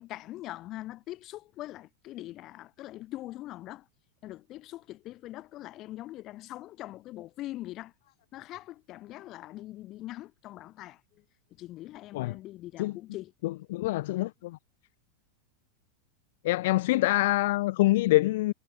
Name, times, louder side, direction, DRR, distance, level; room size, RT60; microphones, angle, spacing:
voice 1, 0.0-3.9 4.2-7.9 8.3-11.0 11.5-13.3, left 15 dB, 35° left, 2.3 m, -42 dB
voice 2, 13.4-14.6 16.4-18.5, left 18 dB, 50° left, 0.5 m, -25 dB
figure-of-eight pair, 90°, 0 cm